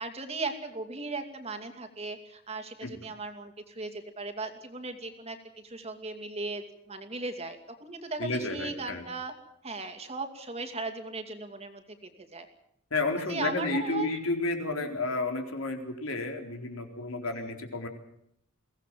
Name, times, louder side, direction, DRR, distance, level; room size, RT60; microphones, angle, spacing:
voice 1, 0.0-5.4 5.6-9.3 9.6-12.5 13.3-14.1 14.8-14.9 17.3-17.5, right 3 dB, 30° right, 6 dB, 2.6 m, -37 dB
voice 2, 8.2-9.0 12.9-17.9, left 2 dB, 80° left, 4 dB, 4.1 m, -31 dB
23.0 x 17.5 x 7.6 m, 0.73 s
head